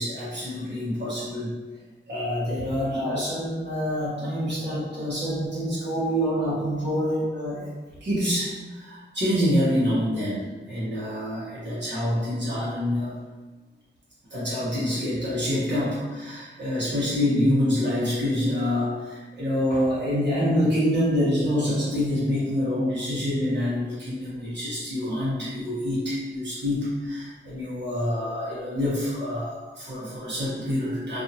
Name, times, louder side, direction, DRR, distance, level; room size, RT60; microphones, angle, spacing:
voice 1, 0.0-1.5 2.1-7.7 8.0-13.1 14.3-31.2, equal, 70° right, -9 dB, 1.2 m, -26 dB
2.6 x 2.6 x 2.7 m, 1.3 s
wide cardioid pair, 100°, 19 cm